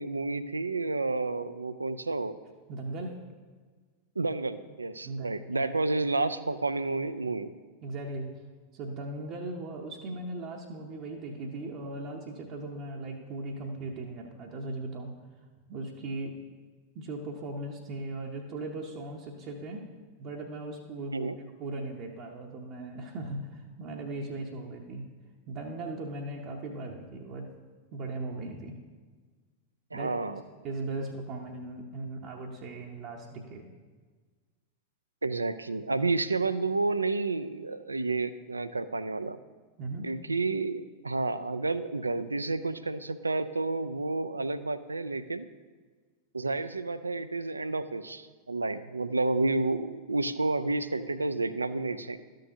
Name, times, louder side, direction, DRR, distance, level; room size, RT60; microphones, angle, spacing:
voice 1, 0.0-2.3 4.2-7.5 21.1-21.4 29.9-30.4 35.2-39.4 40.0-45.5 46.3-52.2, right 3 dB, 80° right, 13 dB, 0.3 m, -30 dB
voice 2, 2.7-3.2 5.0-5.7 7.8-8.3 8.7-15.1 15.7-16.4 16.9-19.8 20.2-21.3 21.6-25.1 25.5-27.5 27.9-28.8 29.9-30.1 30.6-33.7 39.8-40.1, right 2 dB, 40° right, -1 dB, 0.7 m, -38 dB
12.5 x 6.4 x 2.8 m, 1.4 s
figure-of-eight pair, 90°, 0 cm